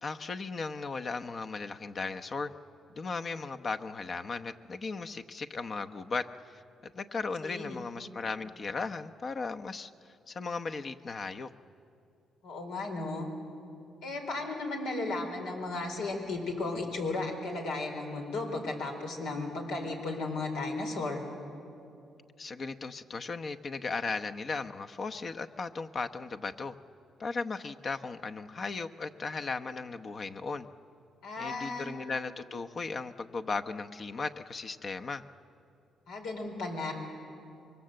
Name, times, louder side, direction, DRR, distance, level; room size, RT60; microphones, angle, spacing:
voice 1, 0.0-2.5 2.9-9.9 10.3-11.5 22.4-26.7 27.2-30.7 31.4-35.2, left 4 dB, 45° left, 7 dB, 0.9 m, -36 dB
voice 2, 7.4-7.8 12.4-13.3 14.0-21.2 31.2-31.9 36.1-36.9, left 2 dB, 90° left, 2 dB, 4.1 m, -35 dB
25.0 x 23.0 x 7.8 m, 2.6 s
cardioid pair, 90°, 0 cm